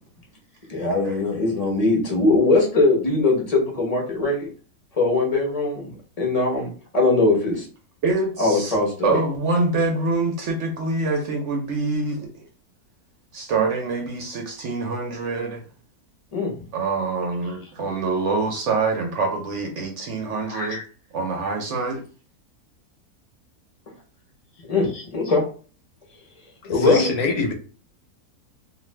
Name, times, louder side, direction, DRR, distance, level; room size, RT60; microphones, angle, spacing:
voice 1, 0.7-4.5 5.0-7.7 8.4-9.2 16.3-16.5 20.5-20.8 24.7-25.5 26.7-27.1, left 3 dB, 30° left, -2 dB, 0.7 m, -21 dB
voice 2, 8.0-8.8 9.0-12.5 13.3-15.6 16.7-20.8 21.1-22.0, right 3 dB, 65° right, 2 dB, 0.8 m, -25 dB
voice 3, 26.6-27.5, left 4 dB, 80° left, 4 dB, 1.2 m, -24 dB
2.5 x 2.4 x 3.2 m, 0.38 s
omnidirectional pair, 1.6 m